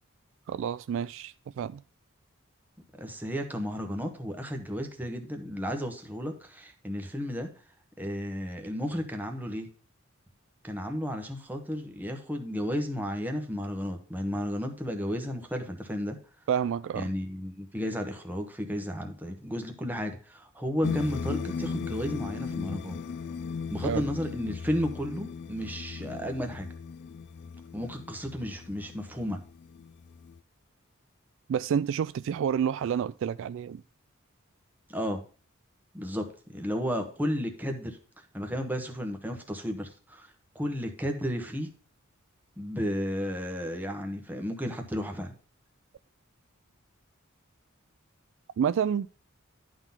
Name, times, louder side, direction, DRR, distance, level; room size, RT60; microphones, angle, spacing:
voice 1, 0.5-1.8 16.5-17.1 23.8-24.0 31.5-33.8 48.6-49.1, right 8 dB, 65° right, 0.3 m, -29 dB
voice 2, 3.0-7.5 8.0-9.7 10.6-16.2 16.9-23.0 23.7-26.7 27.7-29.4 34.9-35.2 35.9-36.3 36.5-38.0 38.3-41.7 42.6-45.3, equal, 10° right, 1.2 m, -33 dB
sound 1, 20.8-30.4, left 5 dB, 55° left, 0.4 m, -37 dB
11.0 x 4.0 x 5.6 m
head